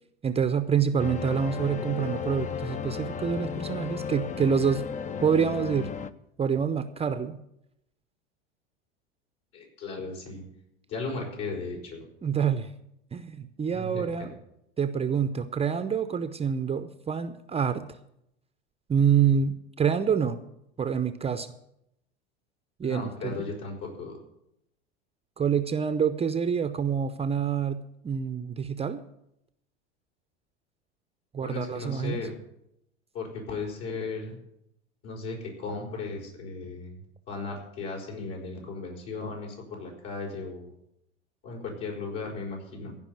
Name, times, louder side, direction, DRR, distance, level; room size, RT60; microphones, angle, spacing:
voice 1, 0.2-4.9 5.2-5.9 6.4-7.4 12.2-12.7 13.1-14.3 14.8-17.8 18.9-20.4 20.8-21.5 22.8-23.4 25.4-29.0 31.3-32.3, right 7 dB, 20° right, 10 dB, 0.7 m, -27 dB
sound 1, 1.0-6.1, left 7 dB, 20° left, 0.6 m, -34 dB
voice 2, 9.5-10.4 10.9-12.1 13.7-14.3 22.8-24.2 31.4-32.3 33.1-34.4 35.0-37.0 37.3-40.7 41.4-43.0, left 3 dB, 60° left, -1 dB, 5.2 m, -36 dB
15.5 x 5.4 x 9.6 m, 0.80 s
hypercardioid pair, 85°, 34 cm